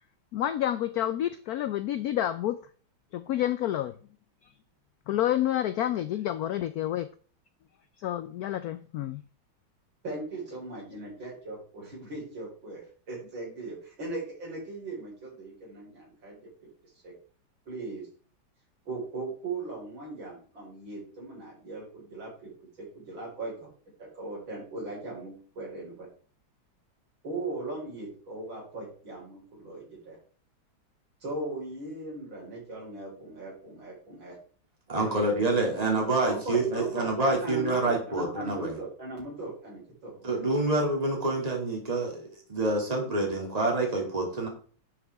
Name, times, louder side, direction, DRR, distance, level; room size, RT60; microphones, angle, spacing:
voice 1, 0.3-2.6 3.1-3.9 5.1-7.1 8.0-9.2, left 12 dB, 85° left, 12 dB, 0.8 m, -29 dB
voice 2, 10.0-16.7 17.0-17.1 17.7-18.1 18.9-22.5 22.8-23.7 24.0-26.1 27.2-30.2 31.2-34.4 35.0-35.3 36.2-40.4, right 2 dB, 75° right, -3 dB, 5.2 m, -39 dB
voice 3, 34.9-38.8 40.2-44.5, right 2 dB, 20° right, 1 dB, 2.4 m, -27 dB
11.0 x 7.0 x 3.5 m, 0.42 s
omnidirectional pair, 2.2 m